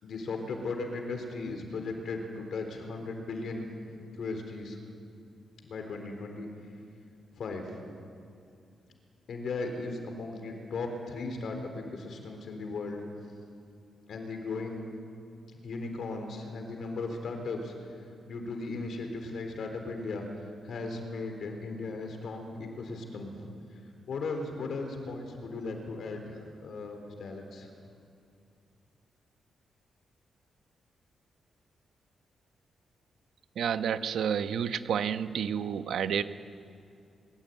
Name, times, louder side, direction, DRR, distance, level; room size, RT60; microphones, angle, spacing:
voice 1, 0.0-4.8 5.6-6.5 7.3-7.8 9.3-13.0 14.1-14.8 15.6-18.0 18.3-20.3 20.6-23.5 24.1-27.7, left 3 dB, 55° left, 4 dB, 3.9 m, -37 dB
voice 2, 33.6-36.2, right 8 dB, 75° right, 10 dB, 1.1 m, -30 dB
24.0 x 22.0 x 9.3 m, 2.5 s
wide cardioid pair, 175°, 0 cm